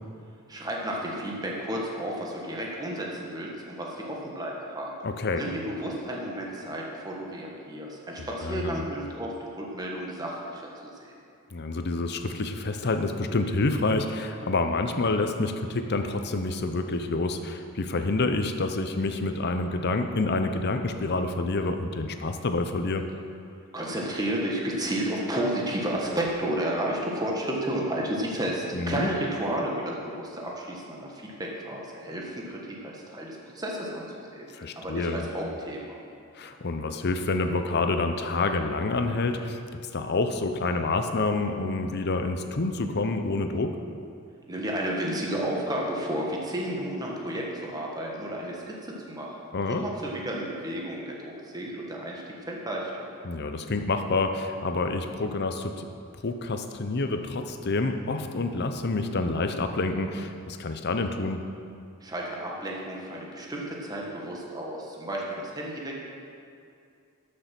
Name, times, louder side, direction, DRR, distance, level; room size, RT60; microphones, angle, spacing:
voice 1, 0.5-4.9 5.4-11.1 23.7-34.4 34.7-36.0 44.5-49.3 49.8-52.2 52.5-53.1 62.0-66.0, right 1 dB, 20° right, -2 dB, 1.5 m, -32 dB
voice 2, 5.0-5.4 8.2-8.8 11.5-23.0 28.7-29.1 34.5-35.3 36.3-39.6 39.9-43.8 49.5-49.8 53.2-55.9 56.2-61.4, left 3 dB, 50° left, 7 dB, 0.7 m, -28 dB
12.0 x 6.6 x 6.0 m, 2.5 s
head